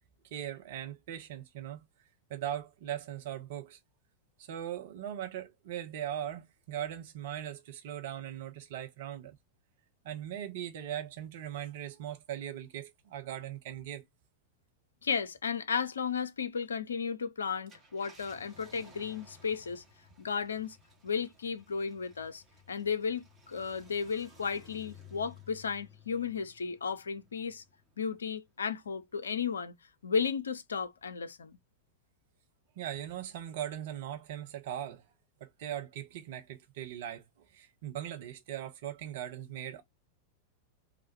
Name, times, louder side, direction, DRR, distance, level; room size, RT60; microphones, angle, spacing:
voice 1, 0.3-1.8 2.3-3.8 4.4-9.4 10.0-14.0 32.8-35.0 35.4-37.2 37.5-39.8, right 11 dB, 55° right, 0.8 m, -39 dB
voice 2, 15.0-19.8 20.2-20.8 21.0-27.6 28.0-29.7 30.0-31.6, left 6 dB, 70° left, 0.5 m, -34 dB
Car, 17.7-28.4 28.9-29.0 31.0-31.2, left 4 dB, 15° right, 1.3 m, -57 dB
3.3 x 2.4 x 4.4 m
figure-of-eight pair, 90°, 0 cm